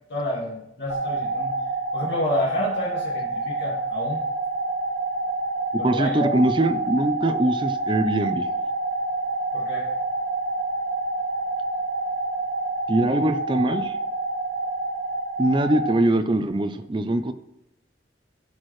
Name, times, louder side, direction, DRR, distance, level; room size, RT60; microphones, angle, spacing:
voice 1, 0.1-1.5 1.9-4.2 5.8-6.3 9.5-9.9, left 1 dB, 75° left, -6 dB, 1.5 m, -29 dB
sound 1, 0.9-15.9, right 2 dB, 50° right, 0.9 m, -27 dB
voice 2, 5.8-8.5 12.9-13.9 15.4-17.3, right 1 dB, 25° right, 9 dB, 0.5 m, -22 dB
13.0 x 4.5 x 3.2 m, 0.83 s
head